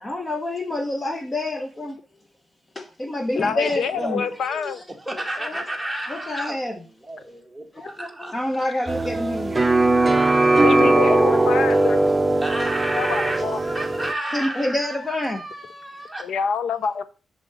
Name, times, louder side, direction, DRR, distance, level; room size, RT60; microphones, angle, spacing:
voice 1, 0.0-2.0 3.0-4.8 5.4-5.6 6.1-6.8 7.7-9.7 14.3-15.4, left 1 dB, 20° left, 0.9 m, -28 dB
voice 2, 3.4-4.8 10.5-12.0 13.0-13.6 16.2-17.0, left 6 dB, 85° left, 0.7 m, -26 dB
voice 3, 3.9-4.3 4.9-6.6 7.0-7.7 7.9-8.3 8.8-10.6 11.7-11.8 12.4-16.2, right 1 dB, ahead, 1.7 m, -32 dB
sound 1, 8.9-14.1, right 2 dB, 20° right, 0.7 m, -19 dB
6.1 x 5.2 x 6.5 m
cardioid pair, 115°, 0 cm